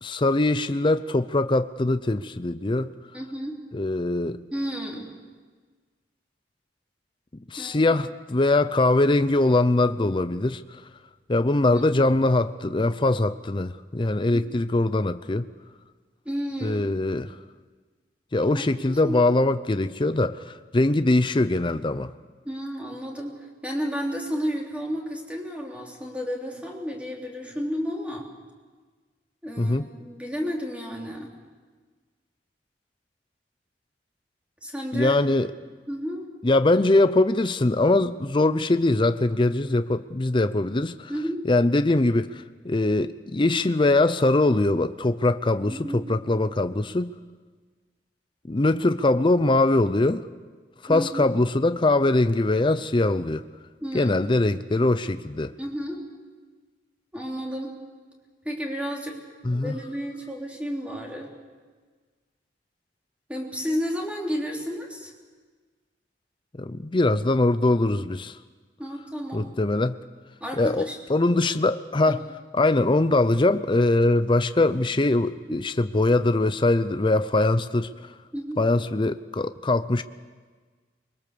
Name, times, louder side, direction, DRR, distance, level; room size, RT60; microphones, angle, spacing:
voice 1, 0.0-2.9 3.7-4.4 7.5-10.8 11.3-15.5 16.6-17.4 18.3-22.1 29.6-29.9 34.9-35.5 36.4-41.1 41.4-47.1 48.5-50.3 50.8-53.4 53.9-55.5 59.4-59.7 66.6-68.4 69.3-70.0 70.6-72.3 72.5-77.9 78.6-80.0, left 2 dB, 30° left, 11 dB, 0.6 m, -22 dB
voice 2, 3.1-3.6 4.5-5.1 7.6-7.9 11.7-11.8 14.3-14.5 16.3-16.8 18.5-18.6 19.0-19.1 22.5-28.3 29.4-31.3 34.6-35.1 35.9-36.3 41.1-41.4 45.7-46.0 50.9-51.2 53.8-54.1 55.6-56.0 57.1-57.7 58.5-59.2 59.5-61.3 63.3-65.1 68.8-69.5 70.4-71.3 75.5-75.7 78.3-78.6, equal, 10° right, -1 dB, 3.5 m, -32 dB
24.5 x 22.0 x 6.9 m, 1.5 s
head